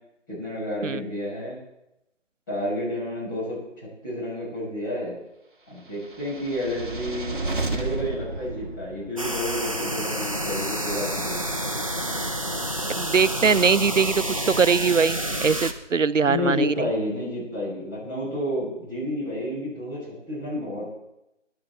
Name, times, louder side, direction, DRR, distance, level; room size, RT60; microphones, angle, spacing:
voice 1, 0.3-1.6 2.5-5.2 5.7-11.4 16.2-20.9, left 1 dB, 15° left, -8 dB, 6.5 m, -30 dB
sound 1, 6.0-9.5, right 2 dB, 45° right, 1.7 m, -32 dB
sound 2, 9.2-15.7, right 1 dB, 30° right, 0.9 m, -29 dB
voice 2, 12.9-16.9, right 5 dB, 90° right, 17 dB, 0.7 m, -22 dB
19.5 x 11.5 x 4.6 m, 0.87 s
figure-of-eight pair, 165°, 36 cm